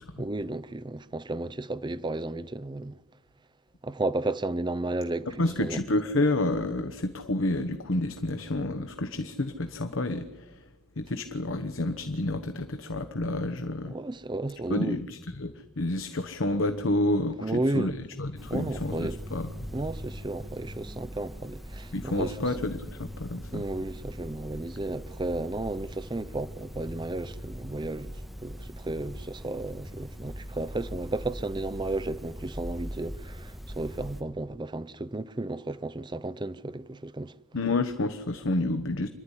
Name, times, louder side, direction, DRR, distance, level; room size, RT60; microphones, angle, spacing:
voice 1, 0.2-3.0 3.8-5.8 13.9-15.0 17.4-18.0 18.5-19.2 19.7-22.4 23.5-37.3, right 2 dB, 20° right, 0.6 m, -33 dB
voice 2, 5.4-10.6 11.0-13.9 14.7-17.9 18.2-19.5 21.9-23.6 37.5-39.1, left 2 dB, 65° left, 1.0 m, -29 dB
sound 1, 18.4-34.2, equal, ahead, 1.5 m, -41 dB
26.5 x 11.5 x 10.0 m
head